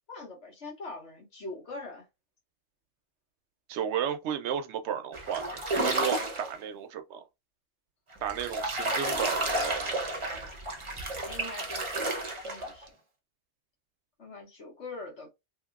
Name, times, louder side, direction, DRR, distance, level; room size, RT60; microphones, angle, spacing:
voice 1, 0.1-2.1 8.2-8.3 11.3-12.1 12.4-12.9 14.2-15.3, left 3 dB, 80° left, 1.8 m, -42 dB
voice 2, 3.7-7.2 8.2-10.0, right 8 dB, 80° right, 0.9 m, -33 dB
sound 1, 5.1-6.5 8.1-12.9, right 2 dB, 30° right, 0.7 m, -31 dB
3.0 x 2.9 x 2.3 m
omnidirectional pair, 1.2 m